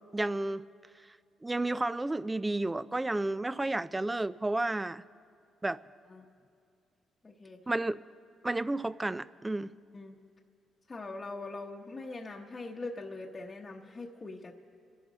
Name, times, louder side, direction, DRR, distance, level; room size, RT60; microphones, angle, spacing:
voice 1, 0.1-0.7 1.4-5.0 5.6-5.8 7.7-8.0 8.4-9.7, right 2 dB, 15° right, 0.4 m, -31 dB
voice 2, 7.2-7.6 9.9-10.2 10.9-14.5, left 3 dB, 30° left, 1.0 m, -42 dB
28.5 x 11.5 x 4.1 m
cardioid pair, 90°, 0 cm